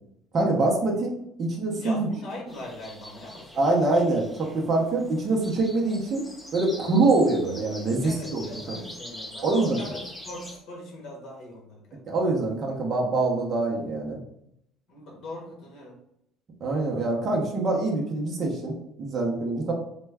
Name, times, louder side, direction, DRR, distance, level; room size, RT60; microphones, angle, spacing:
voice 1, 0.3-1.1 1.4-2.1 3.6-6.2 6.5-8.8 9.4-9.8 12.1-14.2 16.6-19.7, right 2 dB, 30° right, -2 dB, 0.6 m, -24 dB
voice 2, 1.7-3.5 3.8-4.1 8.0-12.2 14.9-15.9, left 1 dB, 45° left, -2 dB, 1.3 m, -41 dB
sound 1, 2.5-10.6, left 1 dB, 10° left, 0.7 m, -44 dB
3.2 x 2.1 x 3.4 m, 0.75 s
cardioid pair, 165°, 0 cm